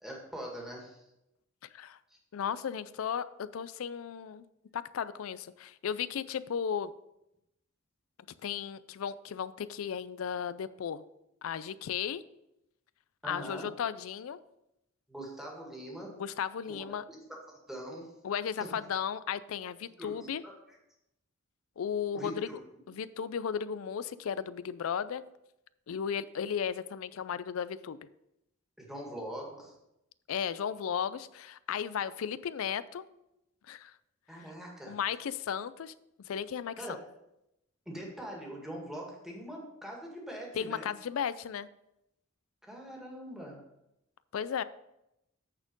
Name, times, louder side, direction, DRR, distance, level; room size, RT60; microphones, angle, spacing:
voice 1, 0.0-1.0 13.2-13.7 15.1-16.1 16.6-16.8 17.1-17.2 17.5-18.2 18.6-18.8 20.0-20.8 22.1-22.6 28.8-29.7 34.3-35.0 36.8-37.0 37.9-40.9 42.6-43.6, right 1 dB, ahead, -2 dB, 1.7 m, -43 dB
voice 2, 2.3-4.4 4.7-6.9 8.4-11.0 11.4-12.2 13.3-14.4 16.2-17.0 18.2-20.4 21.8-22.5 22.9-25.2 25.9-28.0 30.3-33.0 33.7-33.9 34.9-35.9 36.2-36.7 40.6-41.7 44.3-44.6, left 8 dB, 85° left, 16 dB, 0.4 m, -35 dB
8.8 x 4.3 x 5.2 m, 0.87 s
head